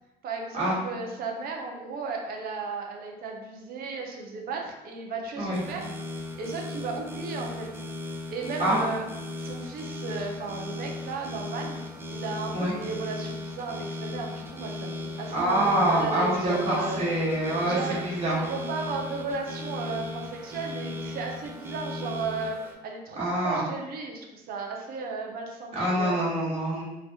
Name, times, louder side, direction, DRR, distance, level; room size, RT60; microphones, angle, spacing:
voice 1, 0.2-5.9 6.4-7.7 8.3-9.0 9.4-11.8 12.1-17.0 17.6-18.1 18.4-26.2, right 4 dB, 60° right, 1 dB, 0.6 m, -35 dB
sound 1, 5.5-22.8, left 2 dB, 15° right, 0.4 m, -37 dB
voice 2, 15.3-17.8 18.0-18.4 23.2-23.6 25.7-26.8, right 1 dB, 35° right, -7 dB, 1.3 m, -25 dB
3.1 x 2.3 x 2.7 m, 1.0 s
cardioid pair, 110°, 17 cm